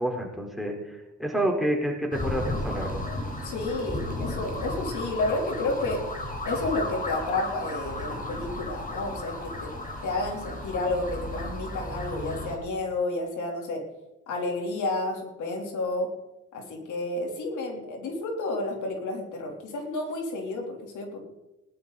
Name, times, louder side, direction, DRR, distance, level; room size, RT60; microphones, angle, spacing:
voice 1, 0.0-3.0, right 1 dB, ahead, 2 dB, 4.2 m, -29 dB
sound 1, 2.1-12.6, left 1 dB, 30° left, 4.5 m, -34 dB
voice 2, 3.4-6.0 6.4-9.7 10.0-13.8 14.3-16.1 16.5-21.2, left 2 dB, 80° left, 1 dB, 3.7 m, -31 dB
19.5 x 11.5 x 4.2 m, 1.0 s
cardioid pair, 90°, 30 cm